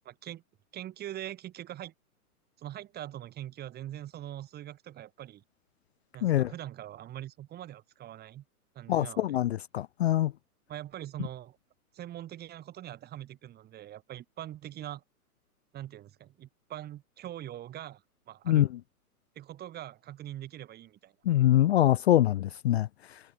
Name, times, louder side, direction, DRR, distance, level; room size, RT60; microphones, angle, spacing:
voice 1, 0.1-0.4 0.7-1.9 2.6-5.4 6.1-8.4 8.8-9.4 10.7-11.6 11.9-15.0 15.7-18.7 19.4-21.1, right 12 dB, 20° right, 3.5 m, -42 dB
voice 2, 6.2-6.5 8.9-10.3 18.5-18.7 21.3-23.2, left 13 dB, 45° left, 0.5 m, -24 dB
hypercardioid pair, 140°, 46 cm